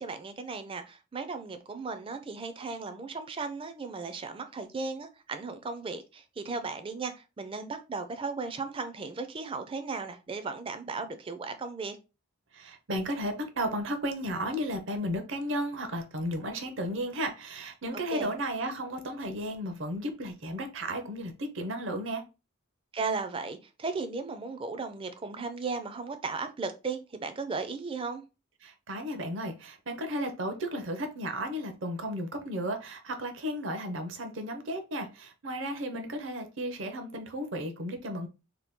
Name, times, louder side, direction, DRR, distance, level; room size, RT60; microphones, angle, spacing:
voice 1, 0.0-12.0 18.1-18.3 22.9-28.2, right 4 dB, 25° right, 0.4 m, -36 dB
voice 2, 12.5-22.2 28.6-38.3, equal, 65° right, 0.7 m, -34 dB
2.9 x 2.2 x 3.5 m
head